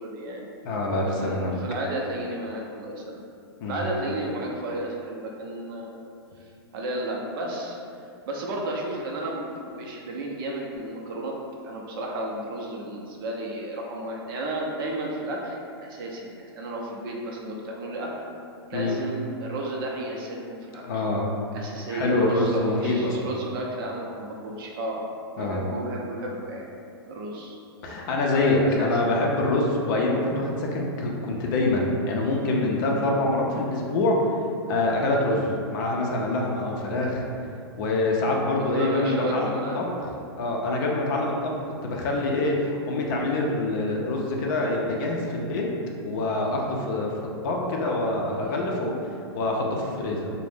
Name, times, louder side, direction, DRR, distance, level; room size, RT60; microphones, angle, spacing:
voice 1, 0.0-0.5 1.0-3.2 3.7-5.9 6.7-7.8 8.3-9.4 9.7-11.4 11.6-18.1 18.7-21.0 21.5-25.0 25.4-26.7 27.1-27.6 28.3-29.0 38.6-39.8, right 1 dB, 55° right, -1 dB, 0.5 m, -33 dB
voice 2, 0.6-1.6 3.6-3.9 18.7-19.0 20.8-21.3 21.9-23.3 25.4-25.7 27.8-34.2 34.7-37.2 37.8-39.8 40.4-41.5 41.8-45.7 46.0-48.9 49.3-50.3, left 2 dB, 50° left, -1 dB, 0.5 m, -25 dB
2.5 x 2.1 x 3.4 m, 2.5 s
hypercardioid pair, 135°, 14 cm